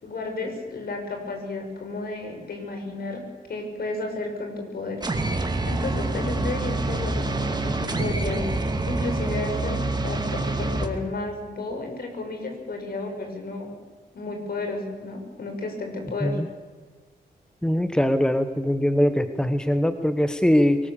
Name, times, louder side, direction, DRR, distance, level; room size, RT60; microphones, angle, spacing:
voice 1, 0.0-3.2 3.5-5.0 5.7-13.7 14.1-16.4, left 3 dB, 60° left, 4 dB, 5.8 m, -32 dB
sound 1, 5.0-10.9, right 2 dB, 25° right, 2.4 m, -26 dB
voice 2, 17.6-20.8, equal, 5° left, 9 dB, 1.2 m, -21 dB
23.5 x 19.5 x 7.2 m, 1.4 s
cardioid pair, 90°, 18 cm